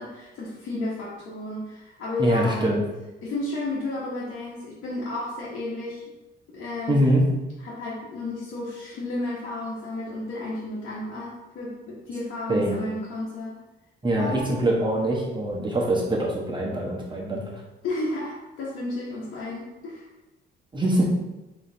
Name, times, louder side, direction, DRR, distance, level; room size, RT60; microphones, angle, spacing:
voice 1, 0.0-2.7 3.2-6.0 6.5-7.1 7.6-13.6 14.2-14.6 17.8-20.1, left 2 dB, 80° left, -8 dB, 1.2 m, -32 dB
voice 2, 2.2-2.8 6.9-7.2 12.5-12.8 14.0-17.4 20.7-21.0, right 1 dB, 25° right, -2 dB, 1.2 m, -23 dB
4.1 x 3.1 x 3.9 m, 1.0 s
cardioid pair, 90°, 20 cm